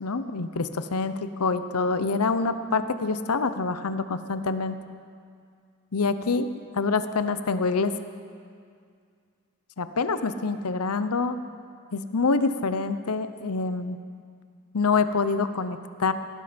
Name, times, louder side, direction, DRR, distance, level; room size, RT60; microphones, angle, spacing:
voice 1, 0.0-4.7 5.9-6.5 6.7-7.9 9.8-11.4 11.9-14.0 14.7-16.1, left 4 dB, 85° left, 11 dB, 0.8 m, -26 dB
17.5 x 15.0 x 5.2 m, 2.2 s
head